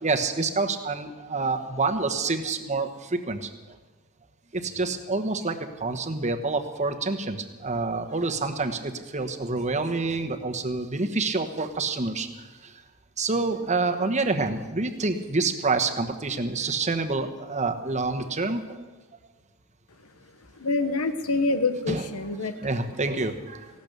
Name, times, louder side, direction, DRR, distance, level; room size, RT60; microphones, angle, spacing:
voice 1, 0.0-3.5 4.5-12.7 13.2-18.8 21.9-22.0 22.6-23.7, right 3 dB, 35° right, 6 dB, 1.2 m, -27 dB
voice 2, 20.6-22.8, left 3 dB, 90° left, 10 dB, 1.1 m, -26 dB
16.0 x 12.0 x 6.8 m, 1.3 s
head